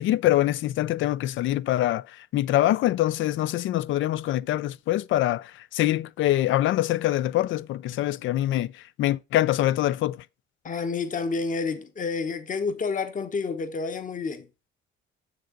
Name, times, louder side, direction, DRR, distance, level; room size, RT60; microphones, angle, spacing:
voice 1, 0.0-10.2, left 14 dB, 75° left, 0.4 m, -24 dB
voice 2, 10.6-14.5, left 4 dB, 40° left, 1.1 m, -29 dB
6.8 x 6.6 x 3.9 m
cardioid pair, 90°, 20 cm